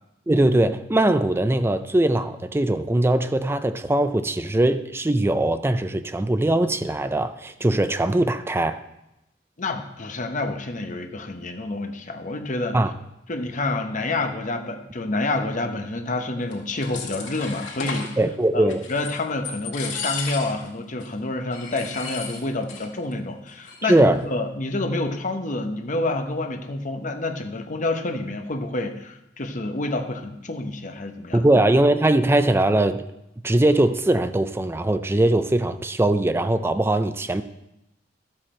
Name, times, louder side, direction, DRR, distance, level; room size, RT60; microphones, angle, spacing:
voice 1, 0.3-8.8 12.7-12.9 18.2-18.9 23.8-24.2 31.3-33.0 33.4-37.4, right 1 dB, 15° right, 0.4 m, -21 dB
voice 2, 9.6-12.8 13.3-18.2 18.5-18.6 18.9-31.4, left 2 dB, 45° left, 1.0 m, -28 dB
sound 1, 16.5-18.1 18.7-19.2 19.4-20.7 21.0-21.1 21.5-22.9 23.1-23.2 23.5-24.0, left 4 dB, 85° left, 2.0 m, -34 dB
12.5 x 7.6 x 4.3 m
head